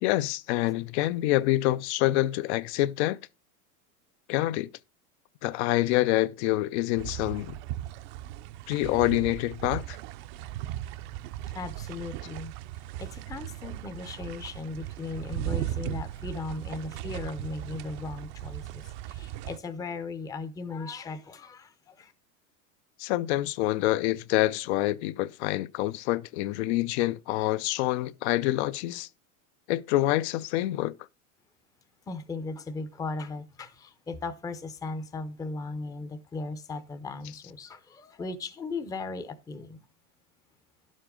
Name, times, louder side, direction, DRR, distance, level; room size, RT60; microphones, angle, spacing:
voice 1, 0.0-3.2 4.3-4.7 5.4-7.6 8.7-10.0 23.0-29.1 29.7-31.0, left 16 dB, 50° left, 0.5 m, -26 dB
sound 1, 7.0-19.6, right 14 dB, 45° right, 0.6 m, -37 dB
voice 2, 11.5-12.5 13.0-22.1 32.1-39.8, left 3 dB, 10° left, 0.6 m, -37 dB
11.0 x 7.3 x 3.7 m
supercardioid pair, 130°, 44 cm